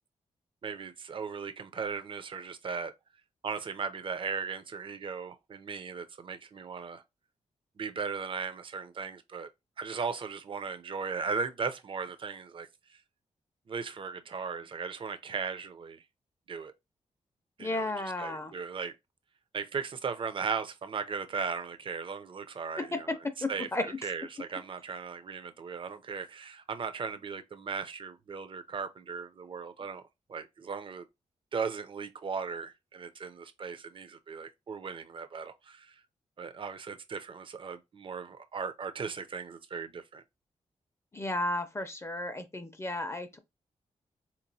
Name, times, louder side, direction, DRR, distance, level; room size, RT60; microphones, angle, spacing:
voice 1, 0.6-2.9 3.4-7.0 7.8-9.5 9.8-13.0 13.7-16.0 16.5-16.7 17.6-17.9 18.2-18.9 19.5-23.1 23.5-30.0 30.3-31.1 31.5-36.0 36.4-40.2, right 5 dB, 45° right, 0.5 m, -37 dB
voice 2, 17.6-18.5 22.8-24.0 41.1-43.4, left 2 dB, 20° left, 0.5 m, -33 dB
4.0 x 2.9 x 2.7 m
wide cardioid pair, 100°, 13 cm